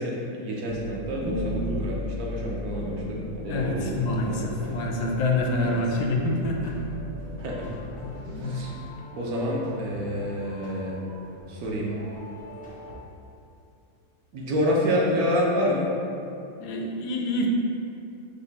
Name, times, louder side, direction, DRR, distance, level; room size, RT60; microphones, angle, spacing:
voice 1, 0.0-3.9 4.2-4.5 5.6-5.8 7.4-7.6 8.4-8.7 9.1-11.0 11.5-11.9 14.3-15.9, equal, 70° right, -3 dB, 1.2 m, -28 dB
sound 1, 0.6-8.9, left 1 dB, 90° right, 1.9 m, -36 dB
voice 2, 3.4-6.8 8.0-8.6 16.6-17.5, left 2 dB, 85° left, 1 dB, 1.2 m, -27 dB
sound 2, 4.2-13.0, right 1 dB, 10° left, 0.3 m, -44 dB
5.1 x 2.2 x 3.9 m, 2.6 s
omnidirectional pair, 1.7 m